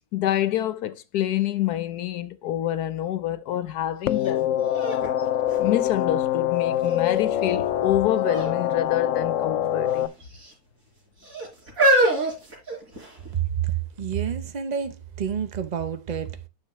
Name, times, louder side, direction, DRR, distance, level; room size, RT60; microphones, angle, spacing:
voice 1, 0.0-4.5 5.6-10.1, left 12 dB, 85° left, 1.3 m, -27 dB
sound 1, 4.1-10.1, left 12 dB, 70° left, 0.8 m, -24 dB
sound 2, 4.2-4.3 4.7-6.3 6.9-7.4 8.2-8.6 8.8-9.0 9.9-10.5 11.2-13.3 14.0-14.1, right 1 dB, 65° right, 4.4 m, -25 dB
voice 2, 13.6-16.3, right 8 dB, 40° right, 0.6 m, -29 dB
9.2 x 6.4 x 3.0 m
omnidirectional pair, 1.6 m